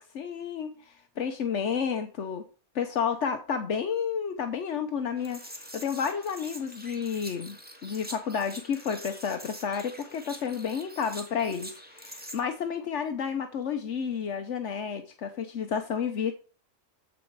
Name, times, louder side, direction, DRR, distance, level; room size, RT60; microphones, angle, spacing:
voice 1, 0.1-2.4 2.7-16.3, left 7 dB, 75° left, 7 dB, 1.2 m, -31 dB
sound 1, 5.2-12.4, equal, 10° right, 1.7 m, -45 dB
14.0 x 5.1 x 4.7 m, 0.37 s
omnidirectional pair, 1.2 m